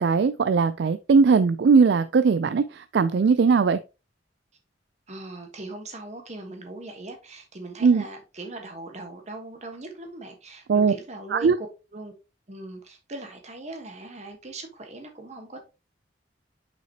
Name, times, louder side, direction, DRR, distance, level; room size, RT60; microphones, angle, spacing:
voice 1, 0.0-3.8 7.8-8.0 10.7-10.9 11.3-11.6, right 5 dB, 65° right, 0.4 m, -19 dB
voice 2, 5.1-11.7 11.9-12.1 12.5-15.6, right 2 dB, 40° right, 1.3 m, -40 dB
5.9 x 5.8 x 2.8 m
head